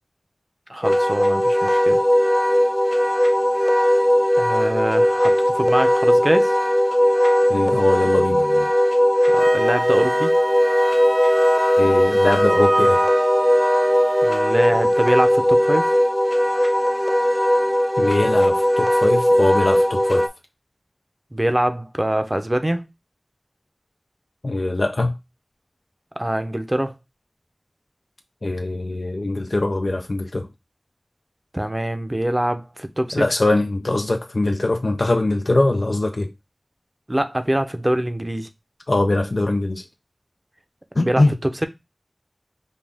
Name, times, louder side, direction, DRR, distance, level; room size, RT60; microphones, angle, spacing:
voice 1, 0.7-2.0 4.4-6.5 9.3-10.3 14.2-15.9 21.3-22.9 26.2-26.9 31.5-33.2 37.1-38.5 41.0-41.5, right 1 dB, 30° right, 0.6 m, -24 dB
Wind instrument woodwind instrument, 0.8-20.3, equal, 15° left, 0.7 m, -18 dB
voice 2, 7.5-8.7 11.8-13.1 18.0-20.3 24.4-25.1 28.4-30.5 33.1-36.3 38.9-39.8 41.0-41.3, left 2 dB, 85° left, 0.4 m, -22 dB
Wind instrument woodwind instrument 2, 9.4-14.5, right 1 dB, 80° right, 0.8 m, -26 dB
5.3 x 2.4 x 3.4 m
wide cardioid pair, 45°, 0 cm